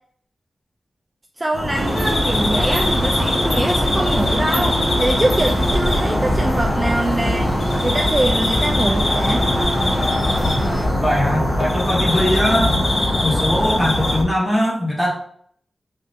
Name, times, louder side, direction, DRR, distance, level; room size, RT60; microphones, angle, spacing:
voice 1, 1.4-9.5, right 1 dB, 25° right, 0 dB, 0.3 m, -24 dB
sound 1, 1.5-14.2, left 1 dB, 50° left, 0.8 m, -21 dB
sound 2, 1.7-10.9, right 1 dB, 40° right, 0.7 m, -26 dB
voice 2, 11.0-12.7 13.2-15.1, left 1 dB, 10° left, -3 dB, 1.1 m, -20 dB
3.2 x 2.6 x 2.6 m, 0.63 s
wide cardioid pair, 85°, 0 cm